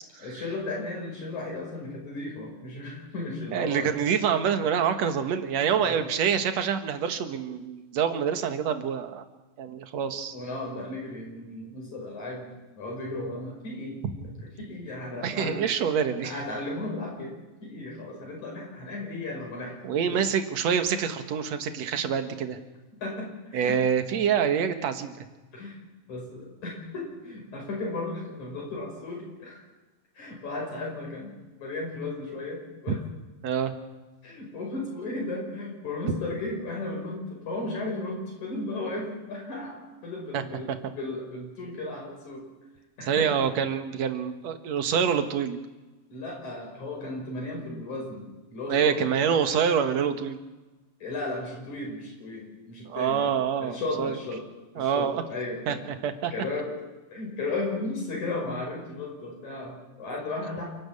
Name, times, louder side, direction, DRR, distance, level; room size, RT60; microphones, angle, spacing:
voice 1, 0.2-3.9 5.8-6.0 10.3-14.0 14.6-15.6 16.2-17.4 17.6-20.2 23.0-23.8 25.5-29.6 30.2-33.0 34.2-42.5 43.0-43.3 46.1-49.1 51.0-53.3 53.6-54.4 54.8-56.0 56.3-56.8 57.1-60.6, left 2 dB, 65° left, -1 dB, 6.9 m, -35 dB
voice 2, 3.5-9.2 9.6-10.4 14.0-14.1 15.2-16.3 19.8-22.6 23.5-25.3 32.9-33.0 33.4-33.7 40.3-40.4 43.1-45.6 48.7-50.4 52.9-54.2 54.8-55.1 55.7-56.3, right 7 dB, 60° right, 8 dB, 2.6 m, -26 dB
28.5 x 12.5 x 8.6 m, 1.2 s
omnidirectional pair, 3.6 m